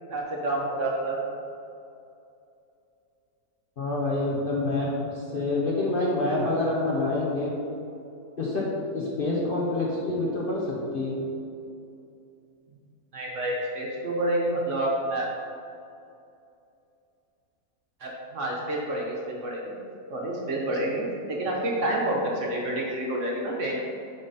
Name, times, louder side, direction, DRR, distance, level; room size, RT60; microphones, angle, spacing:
voice 1, 0.1-1.2 13.1-15.3 18.0-19.6 20.1-23.8, right 1 dB, 50° right, -2 dB, 1.3 m, -28 dB
voice 2, 3.8-7.6 8.4-8.7 8.9-11.2, left 2 dB, 40° left, -5 dB, 1.0 m, -27 dB
8.9 x 4.0 x 4.2 m, 2.6 s
omnidirectional pair, 1.7 m